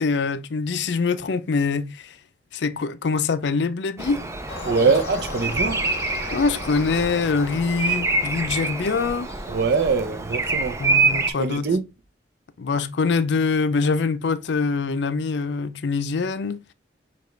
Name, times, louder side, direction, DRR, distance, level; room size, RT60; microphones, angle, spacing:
voice 1, 0.0-2.2 2.5-4.2 6.3-9.3 10.8-11.7 12.6-16.6, left 4 dB, 70° left, 0.4 m, -24 dB
Bird vocalization bird call bird song, 4.0-11.3, right 3 dB, 15° right, 0.5 m, -26 dB
sound 1, 4.5-9.8, left 3 dB, 35° left, 1.9 m, -38 dB
voice 2, 4.6-5.9 9.5-10.8 11.4-11.8, right 4 dB, 60° right, 0.6 m, -22 dB
6.9 x 2.4 x 3.1 m
head